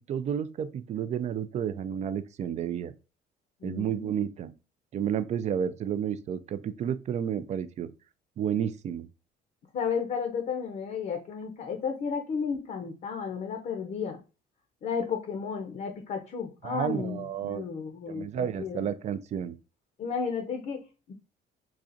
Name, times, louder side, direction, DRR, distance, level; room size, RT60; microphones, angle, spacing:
voice 1, 0.0-2.9 3.6-4.5 4.9-7.9 8.4-9.1 16.6-17.7 18.1-19.5, right 8 dB, 45° right, 0.4 m, -31 dB
voice 2, 3.6-4.1 4.4-4.5 9.7-14.2 14.8-18.9 20.0-21.1, left 6 dB, 50° left, 0.6 m, -33 dB
4.0 x 2.4 x 2.5 m
cardioid pair, 110°, 17 cm